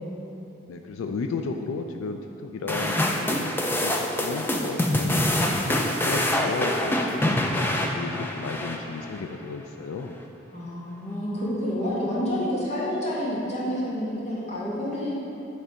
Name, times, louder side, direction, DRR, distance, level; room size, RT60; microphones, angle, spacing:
voice 1, 0.7-10.2, left 4 dB, 90° left, 5 dB, 0.4 m, -34 dB
sound 1, 2.7-9.2, left 1 dB, 10° left, 0.3 m, -25 dB
voice 2, 10.5-15.1, equal, 35° left, -7 dB, 1.5 m, -28 dB
9.5 x 3.3 x 5.0 m, 2.8 s
head